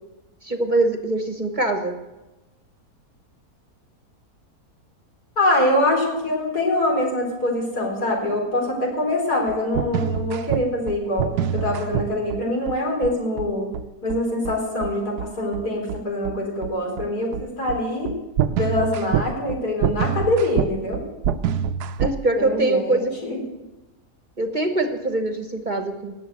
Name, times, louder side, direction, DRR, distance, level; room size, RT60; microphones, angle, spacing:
voice 1, 0.4-2.0 22.0-23.1 24.4-26.1, right 2 dB, 35° right, 6 dB, 1.2 m, -23 dB
voice 2, 5.4-13.7 14.0-18.1 18.5-21.0 22.3-23.4, left 1 dB, 80° left, -1 dB, 4.9 m, -24 dB
sound 1, 9.5-22.2, right 8 dB, 90° right, 1.2 m, -26 dB
19.0 x 7.8 x 8.1 m, 1.1 s
omnidirectional pair, 1.6 m